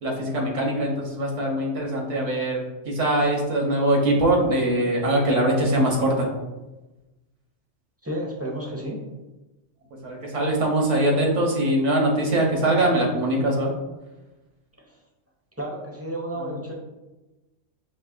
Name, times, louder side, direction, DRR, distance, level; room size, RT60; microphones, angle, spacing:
voice 1, 0.0-6.3 10.0-13.7 16.4-16.5, right 1 dB, 85° right, 0 dB, 1.3 m, -22 dB
voice 2, 8.0-9.0 15.6-16.7, right 1 dB, 20° right, -2 dB, 0.4 m, -31 dB
5.3 x 3.0 x 2.5 m, 1.1 s
omnidirectional pair, 1.2 m